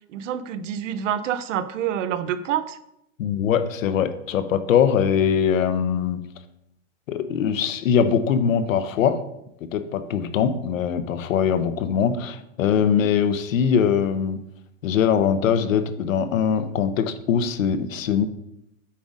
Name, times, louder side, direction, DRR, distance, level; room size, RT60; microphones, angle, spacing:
voice 1, 0.1-2.8, right 9 dB, 70° right, 13 dB, 0.7 m, -27 dB
voice 2, 3.2-6.2 7.1-9.2 9.6-14.4 14.8-18.3, left 7 dB, 85° left, 10 dB, 0.9 m, -22 dB
8.6 x 5.2 x 3.6 m, 0.79 s
supercardioid pair, 155°, 39 cm